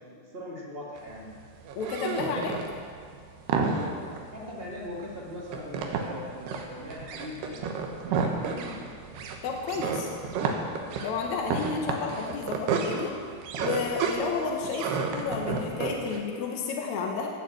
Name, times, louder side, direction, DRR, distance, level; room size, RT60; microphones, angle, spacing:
voice 1, 0.0-1.4 2.1-2.4 4.3-8.9 10.3-10.5, equal, 40° right, -3 dB, 0.8 m, -41 dB
sound 1, 1.0-16.2, right 5 dB, 85° right, 3.2 m, -31 dB
voice 2, 1.8-2.5 9.4-10.1 11.0-13.1 13.6-17.3, left 5 dB, 65° left, 1 dB, 2.1 m, -31 dB
16.0 x 7.5 x 7.8 m, 2.2 s
omnidirectional pair, 4.5 m